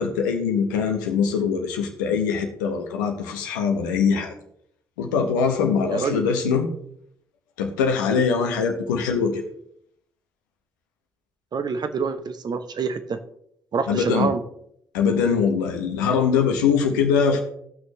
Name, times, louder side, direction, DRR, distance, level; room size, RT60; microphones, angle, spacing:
voice 1, 0.0-4.3 5.0-6.7 7.6-9.4 13.9-14.3 14.9-17.4, left 6 dB, 75° left, 4 dB, 1.2 m, -22 dB
voice 2, 5.9-6.3 11.5-13.2 13.7-14.4, right 5 dB, 45° right, 9 dB, 1.0 m, -26 dB
17.5 x 6.2 x 3.2 m, 0.71 s
figure-of-eight pair, 45°, 10 cm